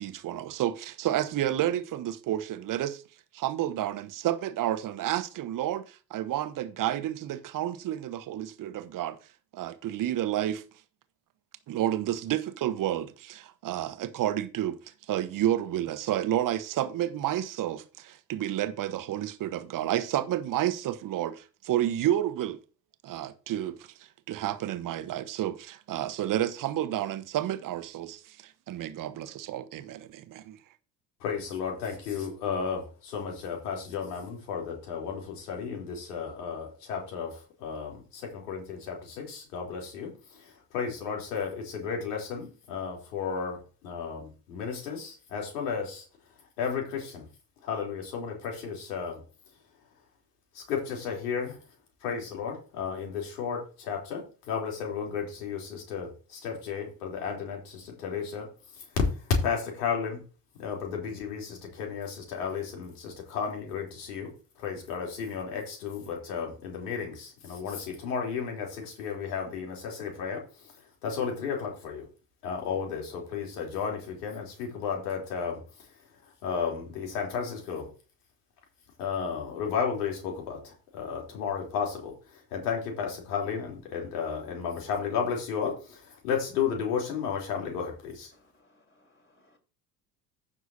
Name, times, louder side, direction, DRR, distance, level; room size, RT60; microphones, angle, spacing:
voice 1, 0.0-3.0 3.3-9.2 9.5-10.6 11.7-14.8 15.1-22.6 23.0-23.9 24.3-30.6, right 12 dB, 40° right, 1.1 m, -30 dB
voice 2, 31.2-40.1 40.7-43.6 43.8-46.0 46.6-47.2 47.6-49.2 50.6-51.5 52.0-54.2 54.5-58.5 59.4-60.2 60.6-64.3 64.6-70.4 71.0-72.0 72.4-75.6 76.4-77.9 79.0-82.1 82.5-85.7 86.2-88.3, left 6 dB, 70° left, 3.6 m, -33 dB
voice 3, 88.3-89.6, left 2 dB, 25° left, 4.3 m, -64 dB
15.0 x 6.1 x 2.8 m
figure-of-eight pair, 60°, 48 cm